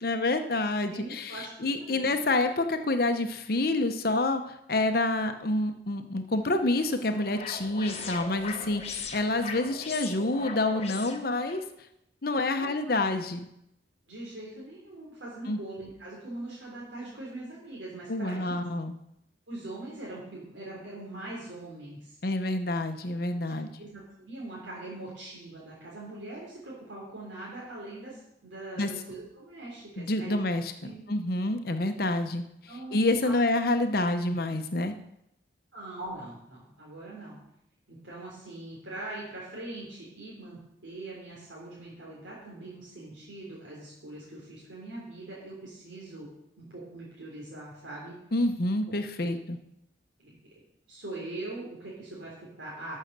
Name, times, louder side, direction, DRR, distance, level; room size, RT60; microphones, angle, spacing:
voice 1, 0.0-11.6 12.2-13.5 15.5-15.6 18.1-19.0 22.2-23.8 28.8-28.9 30.0-34.9 48.3-49.6, left 2 dB, 50° left, 7 dB, 0.8 m, -28 dB
voice 2, 0.9-1.5 1.9-2.1 8.6-8.7 10.6-10.7 12.5-13.0 14.1-18.6 19.5-22.1 23.8-30.3 30.8-31.1 32.7-33.3 35.7-37.3 37.9-46.3 46.6-48.1 48.9-49.0 49.2-49.3 50.2-50.3 50.9-53.0, right 2 dB, 90° right, -5 dB, 3.5 m, -42 dB
sound 1, 6.4-11.6, left 5 dB, 35° left, 1.1 m, -40 dB
12.5 x 6.5 x 6.6 m, 0.80 s
head